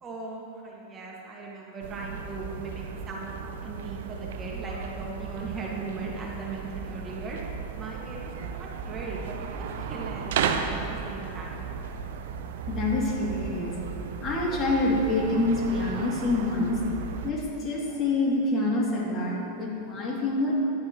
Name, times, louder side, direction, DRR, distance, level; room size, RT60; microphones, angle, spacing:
voice 1, 0.0-7.4 7.8-11.7, right 3 dB, 25° right, -3 dB, 1.7 m, -38 dB
sound 1, 1.8-17.3, right 6 dB, 65° right, 0.7 m, -35 dB
voice 2, 12.7-13.7 14.2-16.8 17.2-20.5, left 2 dB, 30° left, -3 dB, 2.5 m, -26 dB
14.0 x 10.0 x 3.0 m, 2.9 s
hypercardioid pair, 95°, 0 cm